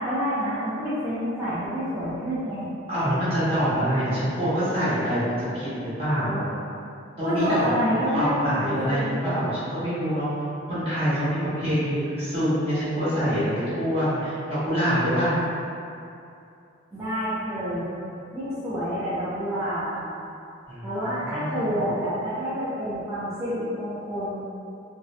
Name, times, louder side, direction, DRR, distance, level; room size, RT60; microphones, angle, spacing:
voice 1, 0.0-2.7 7.2-8.4 8.7-9.2 16.9-17.9 18.3-20.0 20.8-24.3, equal, 15° right, -15 dB, 0.4 m, -28 dB
voice 2, 2.9-6.5 7.2-10.3 10.7-15.3 20.6-21.8, equal, 30° right, -14 dB, 1.1 m, -25 dB
2.6 x 2.1 x 2.5 m, 2.6 s
head